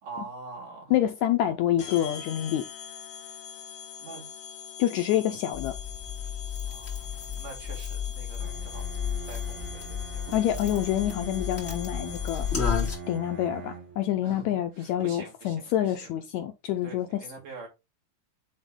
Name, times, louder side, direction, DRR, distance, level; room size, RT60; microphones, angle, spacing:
voice 1, 0.0-1.0 4.0-4.3 6.7-8.9 9.3-10.8 14.2-16.1 16.8-17.7, right 4 dB, 75° right, 4.7 m, -45 dB
voice 2, 0.9-2.6 4.8-5.7 10.3-12.5 13.1-17.2, left 12 dB, 80° left, 1.7 m, -27 dB
sound 1, 1.8-13.2, left 8 dB, 60° left, 2.4 m, -43 dB
sound 2, 5.5-13.0, left 7 dB, 20° left, 2.6 m, -33 dB
Bowed string instrument, 8.4-14.1, right 6 dB, 50° right, 1.6 m, -43 dB
8.9 x 3.6 x 3.6 m
omnidirectional pair, 3.8 m